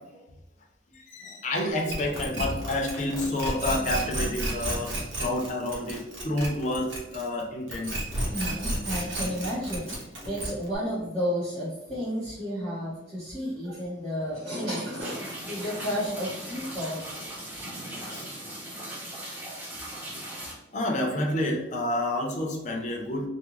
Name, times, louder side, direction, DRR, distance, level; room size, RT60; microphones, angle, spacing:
voice 1, 0.9-4.9 5.2-8.0 18.1-18.2 20.7-23.3, left 1 dB, 40° left, 0 dB, 0.5 m, -29 dB
sound 1, 1.9-7.4 7.7-10.8, right 1 dB, 75° right, 1.0 m, -32 dB
voice 2, 8.3-17.1, equal, 55° right, -13 dB, 1.5 m, -32 dB
sound 2, 15.0-20.5, right 1 dB, 10° right, 0.6 m, -38 dB
3.5 x 2.1 x 3.0 m, 0.94 s
head